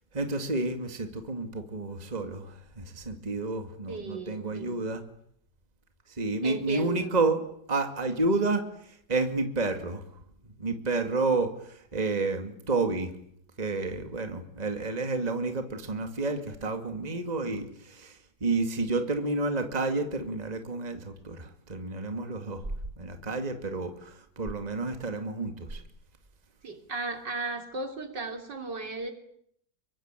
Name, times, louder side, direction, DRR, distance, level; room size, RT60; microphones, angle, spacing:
voice 1, 0.1-5.0 6.1-7.4 7.7-10.0 10.6-13.1 13.6-22.7 23.0-25.8, right 3 dB, 20° right, 6 dB, 2.3 m, -30 dB
voice 2, 3.9-4.7 6.4-7.2 26.6-29.1, right 3 dB, 60° right, 6 dB, 3.9 m, -35 dB
26.5 x 23.5 x 9.1 m, 0.70 s
omnidirectional pair, 2.1 m